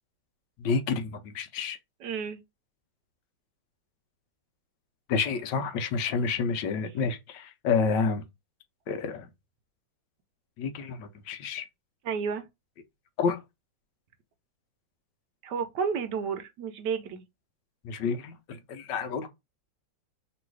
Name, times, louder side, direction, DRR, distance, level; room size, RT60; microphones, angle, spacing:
voice 1, 0.6-1.8 5.1-8.2 8.9-9.3 10.6-11.6 13.2-13.4 17.8-19.3, left 5 dB, 75° left, 1.3 m, -29 dB
voice 2, 2.0-2.4 12.0-12.4 15.4-17.2, right 6 dB, 70° right, 1.2 m, -31 dB
3.1 x 3.0 x 4.6 m
omnidirectional pair, 2.0 m